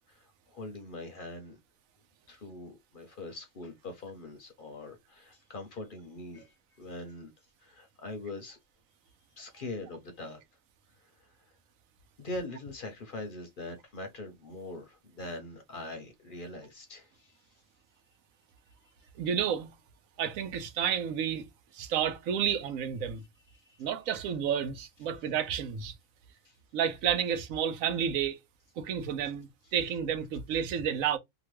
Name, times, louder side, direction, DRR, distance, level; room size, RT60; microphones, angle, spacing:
voice 1, 0.1-1.6 2.3-7.3 7.6-8.6 9.4-10.4 11.0-11.5 12.2-17.6 18.8-18.9 21.8-21.9 23.5-23.9 26.4-26.6 29.6-29.7, left 2 dB, 50° left, 0.7 m, -43 dB
voice 2, 19.2-19.7 20.2-23.2 23.8-25.9 26.7-28.4 28.8-31.2, right 8 dB, 85° right, 1.0 m, -31 dB
2.9 x 2.2 x 3.0 m
omnidirectional pair, 1.4 m